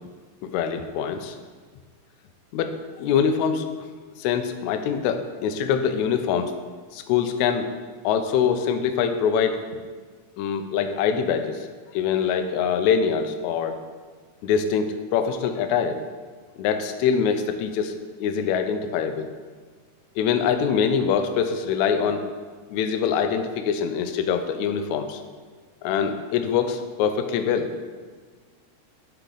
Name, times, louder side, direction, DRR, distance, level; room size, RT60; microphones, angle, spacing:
voice 1, 0.4-1.4 2.5-3.7 4.2-6.5 6.9-7.7 8.0-9.6 10.4-11.7 11.9-13.8 14.4-16.0 16.6-17.9 18.2-19.3 20.2-22.2 22.7-25.2 25.8-27.7, left 7 dB, 85° left, 7 dB, 1.6 m, -24 dB
9.7 x 4.5 x 3.8 m, 1.5 s
omnidirectional pair, 3.9 m